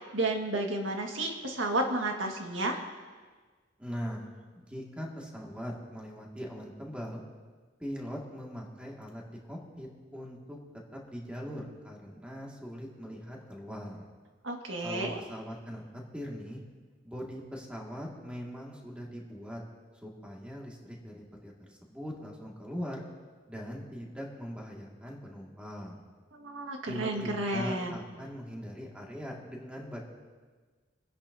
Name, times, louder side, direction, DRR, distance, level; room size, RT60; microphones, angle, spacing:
voice 1, 0.1-2.8 14.4-15.2 26.3-28.0, right 2 dB, 70° right, 2 dB, 1.7 m, -31 dB
voice 2, 3.8-7.2 7.8-10.6 10.9-14.1 14.8-16.6 17.0-19.6 20.0-23.0 23.5-26.1 26.9-30.0, equal, 5° right, -2 dB, 2.0 m, -41 dB
24.5 x 10.5 x 2.7 m, 1.5 s
head